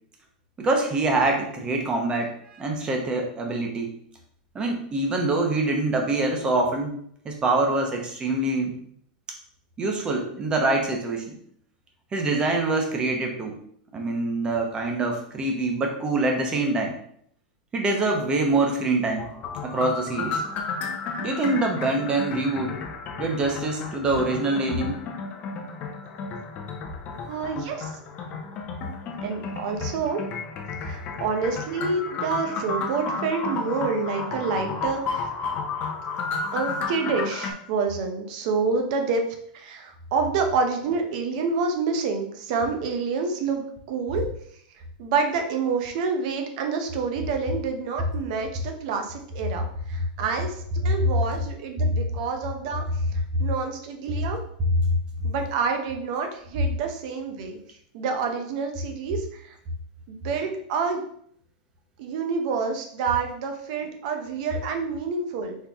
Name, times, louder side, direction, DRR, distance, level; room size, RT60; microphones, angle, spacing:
voice 1, 0.6-3.9 4.5-7.0 7.2-8.8 9.8-11.3 12.1-13.6 13.9-16.9 17.7-19.2 19.6-20.4 21.2-22.8 23.2-25.0 54.8-54.9, right 2 dB, 20° right, 2 dB, 0.9 m, -25 dB
sound 1, 19.1-37.5, left 4 dB, 30° left, 0.8 m, -32 dB
voice 2, 27.2-27.9 29.2-30.2 30.8-35.3 36.5-39.2 39.5-44.2 45.0-52.8 53.4-54.4 55.2-57.6 57.9-59.5 60.1-61.0 62.0-65.6, right 5 dB, 55° right, 4 dB, 0.8 m, -28 dB
4.3 x 3.4 x 3.5 m, 0.66 s
supercardioid pair, 145°, 5 cm